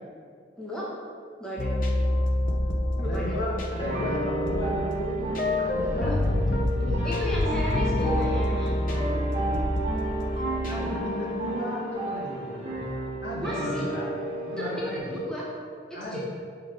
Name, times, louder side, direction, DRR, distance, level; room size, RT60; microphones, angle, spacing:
voice 1, 0.6-0.9 1.4-1.7 3.0-3.4 5.9-6.2 6.8-8.8 10.7-11.0 13.4-13.9 14.6-15.5 15.9-16.2, equal, 5° left, -6 dB, 0.9 m, -34 dB
sound 1, 1.6-10.8, left 1 dB, 45° left, 0.6 m, -27 dB
voice 2, 3.0-6.1 10.7-12.6 13.2-14.1 14.5-15.2 15.9-16.2, equal, 65° left, -5 dB, 1.5 m, -34 dB
sound 2, 3.8-15.0, right 1 dB, 30° right, 1.3 m, -32 dB
6.2 x 3.6 x 5.0 m, 2.1 s
head